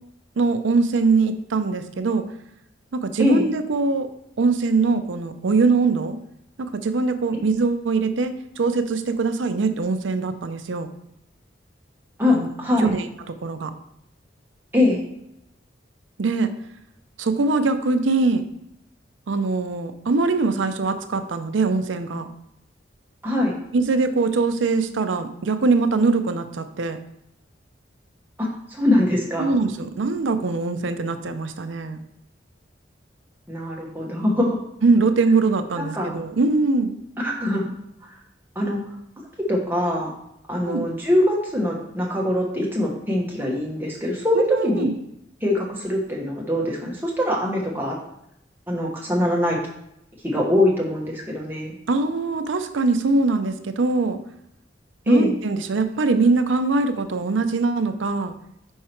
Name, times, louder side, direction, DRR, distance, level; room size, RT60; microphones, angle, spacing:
voice 1, 0.4-2.2 2.9-4.1 4.4-6.2 6.6-10.9 12.3-12.5 12.8-13.7 16.2-16.5 17.2-18.4 19.3-22.3 23.7-27.0 29.4-32.0 34.8-37.0 40.7-40.8 44.3-44.9 51.9-54.2 55.1-58.3, right 3 dB, 85° right, 9 dB, 0.5 m, -22 dB
voice 2, 12.2-12.9 14.7-15.0 23.2-23.5 28.4-29.6 33.5-34.6 35.8-36.2 37.2-37.7 38.0-38.1 38.5-38.8 39.4-40.1 40.5-44.9 45.4-48.0 48.7-49.6 50.2-51.8 55.1-55.3, left 1 dB, 10° right, -2 dB, 1.1 m, -23 dB
5.5 x 4.7 x 4.4 m, 0.79 s
head